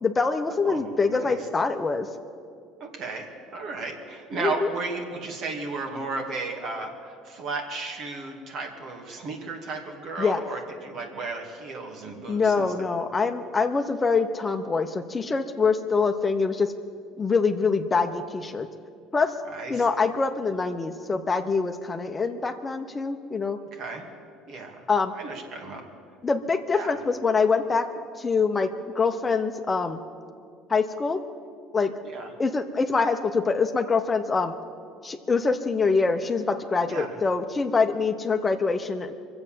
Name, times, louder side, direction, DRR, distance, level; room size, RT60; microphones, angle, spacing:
voice 1, 0.0-2.1 4.4-4.7 10.2-10.4 12.3-16.7 17.2-18.7 19.1-19.3 19.7-23.6 24.9-25.1 26.2-27.9 28.2-28.7 28.9-30.0 30.7-31.2 31.7-31.9 32.4-34.5 35.0-39.1, left 4 dB, 25° left, 7 dB, 1.0 m, -24 dB
voice 2, 0.6-1.4 2.8-12.7 19.4-19.8 23.7-24.0 24.5-24.8 25.1-25.8 26.7-27.0 32.0-32.3 36.8-37.2, right 3 dB, 60° right, 2 dB, 2.8 m, -34 dB
24.0 x 8.0 x 7.6 m, 2.3 s
supercardioid pair, 80°, 0 cm